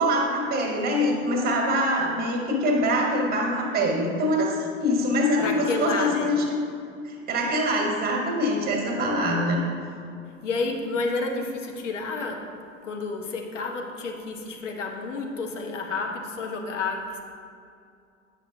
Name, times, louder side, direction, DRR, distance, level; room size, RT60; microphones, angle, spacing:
voice 1, 0.0-6.3 7.0-9.6, equal, 25° right, 0 dB, 1.3 m, -24 dB
voice 2, 5.4-6.3 10.4-12.4 12.8-17.2, left 3 dB, 60° left, 2 dB, 1.1 m, -30 dB
8.7 x 5.8 x 2.8 m, 2.4 s
figure-of-eight pair, 90°, 40 cm